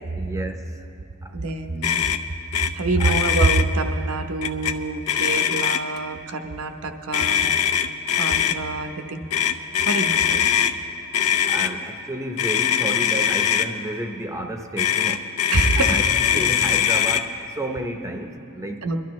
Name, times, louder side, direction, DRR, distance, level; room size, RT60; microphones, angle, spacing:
voice 1, 0.2-0.8 1.2-1.4 3.0-3.2 11.5-15.3 15.8-18.8, right 1 dB, 15° right, 4 dB, 0.7 m, -31 dB
voice 2, 1.3-2.0 2.7-7.5 8.2-9.2 9.9-10.4 15.5-16.0 16.3-16.4 18.8-19.0, right 3 dB, 80° right, 6 dB, 0.9 m, -25 dB
Motor vehicle (road), 1.8-2.2 2.5-2.7 3.0-3.6 4.4-4.7 5.1-6.0 7.1-8.6 9.3-10.7 11.1-11.7 12.4-13.7 14.8-17.2, left 9 dB, 80° left, 0.6 m, -21 dB
22.5 x 12.5 x 3.1 m, 2.8 s
head